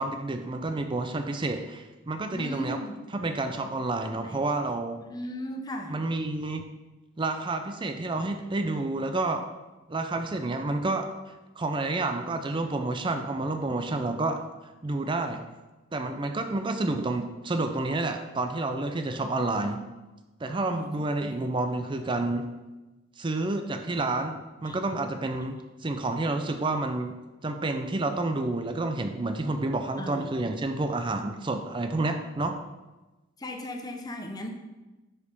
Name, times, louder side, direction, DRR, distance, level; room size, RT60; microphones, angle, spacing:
voice 1, 0.0-2.8 3.1-5.0 5.9-6.6 7.2-9.4 9.9-11.1 11.6-14.4 14.8-15.4 15.9-19.8 20.4-22.5 23.2-27.2 27.4-32.6, right 2 dB, 25° right, 6 dB, 0.5 m, -29 dB
voice 2, 2.3-3.0 4.2-4.5 5.0-5.9 20.5-20.9 21.2-21.5 24.7-24.8 30.0-30.3 33.4-34.5, equal, 20° left, 3 dB, 0.8 m, -37 dB
6.5 x 4.9 x 5.3 m, 1.1 s
head